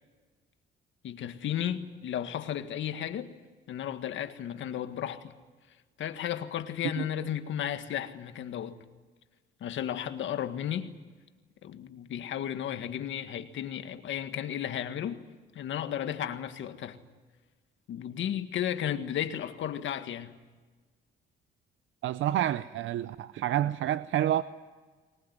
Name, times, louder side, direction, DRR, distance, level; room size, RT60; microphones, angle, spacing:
voice 1, 1.0-3.3 3.7-5.3 6.0-8.8 9.6-10.9 11.6-15.2 15.6-17.0 17.9-20.3, left 10 dB, 75° left, 1.8 m, -34 dB
voice 2, 22.0-24.4, right 12 dB, 80° right, 0.7 m, -28 dB
22.0 x 20.5 x 9.6 m
cardioid pair, 90°, 20 cm